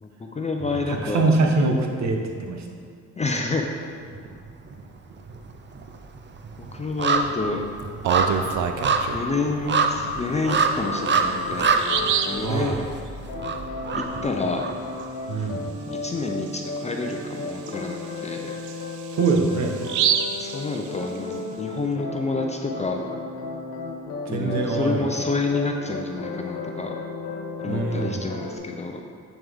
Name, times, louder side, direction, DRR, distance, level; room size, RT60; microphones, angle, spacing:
voice 1, 0.0-1.4 3.2-3.7 6.6-7.6 9.1-11.7 12.3-12.9 13.9-14.7 15.4-15.5 15.9-18.5 20.4-23.0 24.3-26.9 27.6-29.0, left 3 dB, 20° left, 2 dB, 0.7 m, -28 dB
voice 2, 0.9-2.6 12.4-12.8 15.3-15.7 19.1-19.8 24.3-25.1 27.7-28.3, right 3 dB, 65° right, 2 dB, 1.2 m, -23 dB
sound 1, 4.1-4.8 5.1-15.1 15.4-15.5, right 4 dB, 40° right, 0.6 m, -26 dB
Bird vocalization bird call bird song, 7.8-9.3 10.8-10.9 11.3-11.4 11.7-12.5 15.9-16.1 16.5-16.6 17.1-21.3, right 8 dB, 80° right, 0.6 m, -27 dB
sound 2, 10.4-12.8 13.3-28.6, left 3 dB, 90° left, 1.2 m, -34 dB
8.5 x 6.9 x 3.6 m, 2.2 s
cardioid pair, 90°, 30 cm